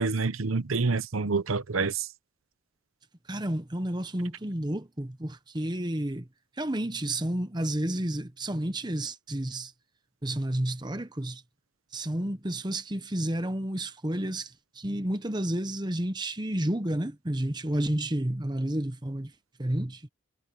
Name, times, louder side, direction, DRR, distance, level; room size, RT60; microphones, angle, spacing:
voice 1, 0.0-2.1, right 4 dB, 90° right, 0.9 m, -27 dB
voice 2, 3.3-6.3 6.6-9.7 10.2-11.4 11.9-19.3 19.6-20.0, right 1 dB, 20° right, 1.0 m, -31 dB
head